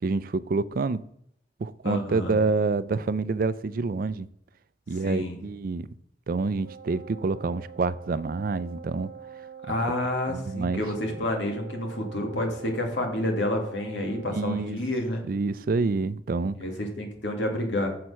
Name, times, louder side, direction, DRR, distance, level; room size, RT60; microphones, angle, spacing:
voice 1, 0.0-1.0 1.6-4.3 4.9-5.9 6.3-9.1 10.3-10.8 14.3-14.8 15.3-16.6, right 3 dB, 50° right, 0.4 m, -27 dB
voice 2, 1.8-2.3 5.0-5.4 9.7-15.2 16.6-17.9, left 1 dB, 90° left, 2.1 m, -29 dB
Wind instrument woodwind instrument, 6.6-14.8, right 8 dB, 85° right, 0.9 m, -44 dB
7.5 x 6.2 x 5.5 m
head